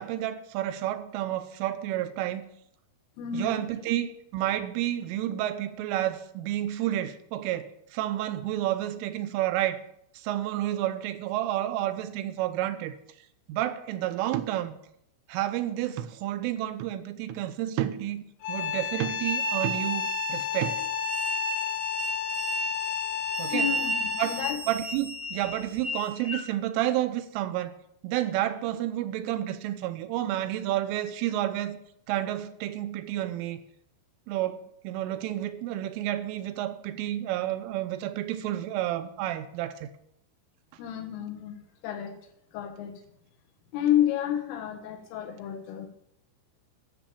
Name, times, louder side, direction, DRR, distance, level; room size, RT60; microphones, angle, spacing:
voice 1, 0.0-2.4 3.3-9.8 10.1-13.0 13.5-14.8 15.3-18.2 18.5-20.8 23.4-23.7 24.2-24.4 24.7-27.7 28.0-31.8 32.1-33.6 34.3-39.9, right 13 dB, 85° right, 3.2 m, -30 dB
voice 2, 3.2-3.6 23.5-23.9 24.3-24.6 40.8-41.6 41.8-42.2 42.5-43.0 43.7-45.9, left 10 dB, 80° left, 4.0 m, -30 dB
sound 1, 18.4-24.6, left 10 dB, 55° left, 2.0 m, -32 dB
sound 2, 19.2-26.4, right 1 dB, 65° right, 2.0 m, -33 dB
13.0 x 7.2 x 7.1 m
omnidirectional pair, 5.8 m